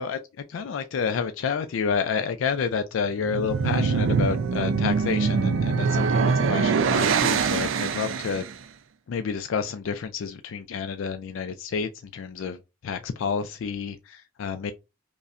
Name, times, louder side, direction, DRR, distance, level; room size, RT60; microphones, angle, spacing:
voice 1, 0.0-8.5 9.1-14.7, left 6 dB, 80° left, 0.4 m, -29 dB
sound 1, 3.1-8.5, right 5 dB, 75° right, 0.4 m, -23 dB
5.2 x 2.1 x 2.4 m
head